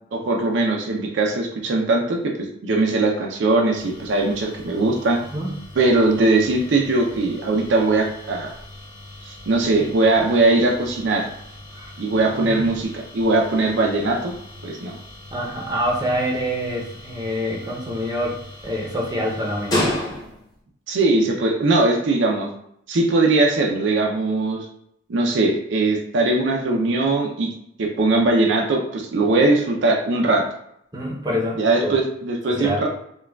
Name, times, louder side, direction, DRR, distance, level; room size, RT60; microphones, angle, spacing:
voice 1, 0.1-5.2 5.8-8.5 9.2-11.3 12.0-14.3 14.6-15.0 20.9-22.5 22.9-24.7 25.1-27.5 27.8-30.5 31.6-32.9, right 2 dB, 65° right, 1 dB, 0.4 m, -20 dB
sound 1, 3.7-20.6, left 1 dB, 20° left, 0.7 m, -35 dB
voice 2, 15.3-18.4 18.6-19.8 30.9-31.9 32.5-32.8, equal, 20° right, -2 dB, 0.6 m, -26 dB
4.5 x 2.2 x 2.2 m, 0.74 s
head